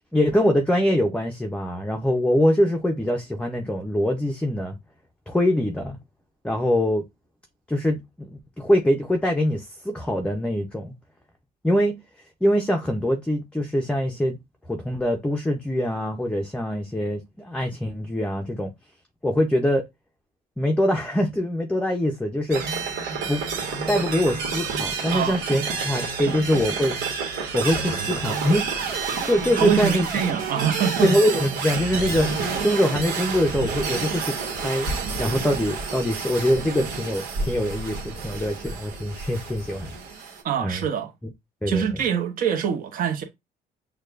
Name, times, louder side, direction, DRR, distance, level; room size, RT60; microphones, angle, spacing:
voice 1, 0.1-4.8 5.3-6.0 6.4-7.0 7.7-10.9 11.6-12.0 12.4-14.4 14.7-18.7 19.2-19.8 20.6-22.6 23.3-23.4 23.9-27.0 27.2-28.7 29.3-30.1 31.0-34.9 35.2-39.9 40.6-40.8 41.6-42.0, equal, 5° left, 0.6 m, -23 dB
sound 1, 22.5-40.4, right 5 dB, 80° right, 1.4 m, -29 dB
voice 2, 25.1-25.4 26.2-26.4 29.6-31.1 40.4-41.1 41.7-43.2, right 8 dB, 55° right, 1.0 m, -24 dB
6.5 x 2.3 x 2.5 m
cardioid pair, 110°, 17 cm